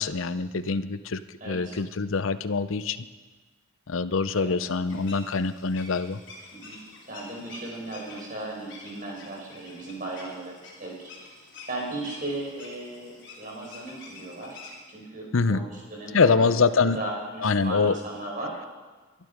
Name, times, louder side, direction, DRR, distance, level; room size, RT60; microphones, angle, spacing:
voice 1, 0.0-1.2 1.5-3.0 3.9-6.2 15.3-15.6 16.1-17.0 17.4-18.0, left 4 dB, 80° left, 13 dB, 0.7 m, -24 dB
voice 2, 1.4-1.8 4.3-4.5 4.9-5.1 6.5-6.8 7.1-10.5 10.8-14.6 14.9-18.5, right 2 dB, 40° right, -1 dB, 4.7 m, -36 dB
sound 1, 4.8-14.8, left 3 dB, 60° left, 4.1 m, -48 dB
22.0 x 11.0 x 5.2 m, 1.3 s
head